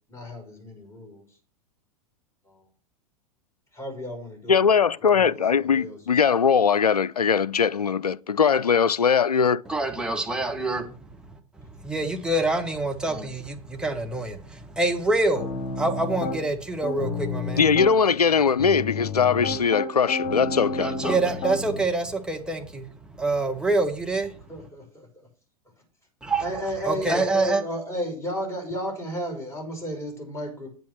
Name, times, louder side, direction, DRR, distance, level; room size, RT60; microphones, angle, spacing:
voice 1, 0.1-1.3 2.5-2.6 3.7-4.9 5.1-6.0 24.5-25.3 26.4-30.7, equal, 15° left, 5.7 m, -33 dB
voice 2, 4.5-9.6 17.6-20.9, left 6 dB, 85° left, 0.4 m, -21 dB
voice 3, 9.7-11.0 11.7-17.7 20.6-24.4 26.3-27.6, right 2 dB, 5° right, 1.7 m, -26 dB
Piano, 15.4-16.4 16.8-17.9 18.6-21.8, left 3 dB, 45° left, 4.2 m, -30 dB
9.1 x 7.8 x 6.2 m
figure-of-eight pair, 95°, 19 cm